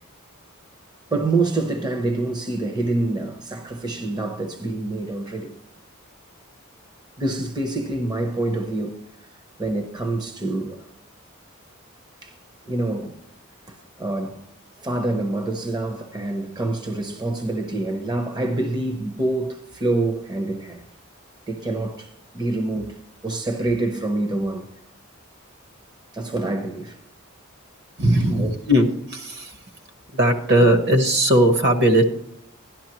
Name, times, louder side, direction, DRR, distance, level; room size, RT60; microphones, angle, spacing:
voice 1, 1.1-5.6 7.2-9.0 9.6-10.8 12.2-12.3 12.7-13.1 13.7-14.4 14.8-20.8 21.5-22.1 22.3-23.0 23.2-24.7 26.1-27.0 28.3-28.5, right 2 dB, 20° right, 0.7 m, -26 dB
voice 2, 28.0-29.6 30.1-32.0, right 1 dB, 55° right, 1.1 m, -18 dB
11.5 x 11.5 x 3.0 m
head